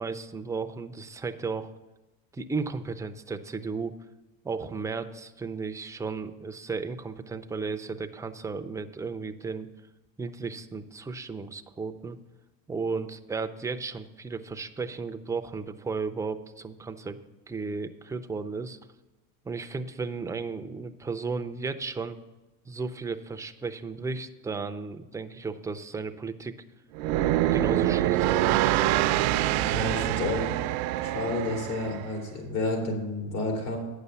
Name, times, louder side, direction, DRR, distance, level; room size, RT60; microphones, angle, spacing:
voice 1, 0.0-1.7 2.3-3.9 4.4-9.7 10.2-12.2 12.7-17.2 17.5-18.8 19.4-22.2 22.7-26.5 27.5-28.7, right 4 dB, 10° right, 7 dB, 0.4 m, -34 dB
sound 1, 26.9-32.1, right 13 dB, 70° right, 0.6 m, -25 dB
voice 2, 29.6-30.5 31.0-33.8, left 2 dB, 85° left, 0 dB, 3.1 m, -30 dB
9.2 x 6.8 x 7.0 m, 1.1 s
supercardioid pair, 115°, 43 cm